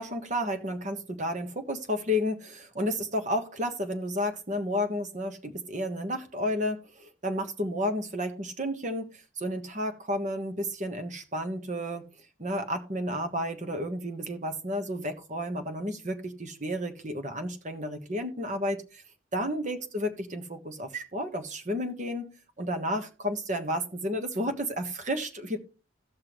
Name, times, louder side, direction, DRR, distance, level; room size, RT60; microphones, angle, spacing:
voice 1, 0.0-12.0 12.4-19.0 19.3-25.6, equal, 40° right, 6 dB, 1.3 m, -32 dB
16.5 x 6.0 x 3.1 m, 0.34 s
head